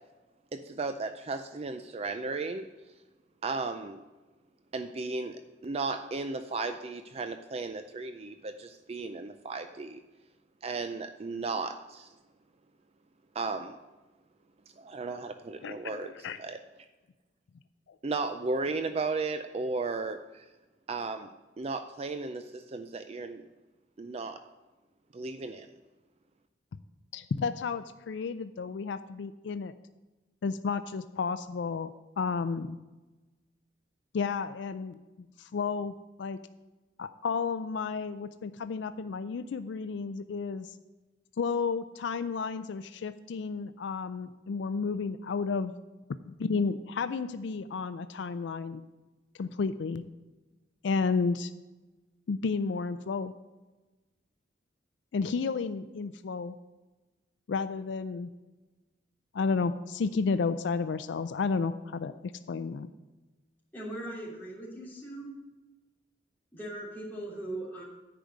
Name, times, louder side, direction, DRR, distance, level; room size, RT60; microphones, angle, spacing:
voice 1, 0.5-2.7 3.4-4.0 4.7-10.0 10.6-12.1 13.3-13.8 14.8-16.1 16.4-16.6 18.0-20.5 20.9-21.3 21.6-23.4 24.0-24.4 25.1-25.7, right 3 dB, 35° right, 8 dB, 0.4 m, -35 dB
voice 2, 15.6-16.4 27.1-29.7 30.4-31.9 32.2-32.8 34.1-35.0 35.4-36.4 37.0-40.8 41.4-45.7 46.3-48.9 49.4-50.0 50.8-51.5 52.3-53.3 55.1-56.5 57.5-58.3 59.3-62.9, left 5 dB, 70° left, 12 dB, 0.4 m, -32 dB
voice 3, 63.7-65.3 66.5-67.8, right 1 dB, 10° left, -6 dB, 3.0 m, -39 dB
10.0 x 4.9 x 8.0 m, 1.2 s
head